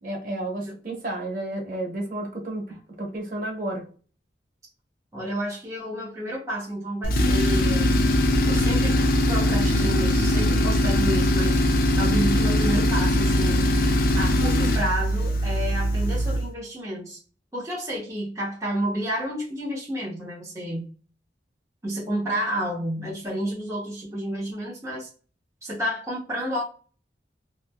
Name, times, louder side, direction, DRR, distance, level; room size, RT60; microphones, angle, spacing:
voice 1, 0.0-2.6 3.0-3.8, right 1 dB, 50° right, 0 dB, 0.9 m, -31 dB
voice 2, 5.1-8.0 8.2-8.9 9.3-11.6 12.0-13.7 14.1-17.2 17.5-20.9 21.8-25.1 25.6-26.6, equal, 15° right, -6 dB, 0.7 m, -30 dB
Tools, 7.0-16.5, left 1 dB, 50° left, 0.4 m, -21 dB
2.8 x 2.4 x 2.2 m, 0.38 s
head